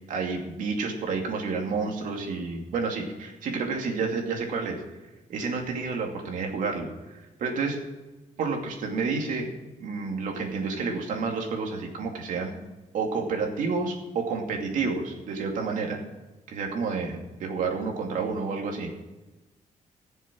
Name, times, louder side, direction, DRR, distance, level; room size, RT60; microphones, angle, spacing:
voice 1, 0.1-4.8 5.3-7.8 8.4-9.5 9.8-12.5 12.9-16.0 16.5-18.9, right 4 dB, 85° right, 2 dB, 2.5 m, -30 dB
18.0 x 7.2 x 6.2 m, 1.1 s
wide cardioid pair, 170°, 13 cm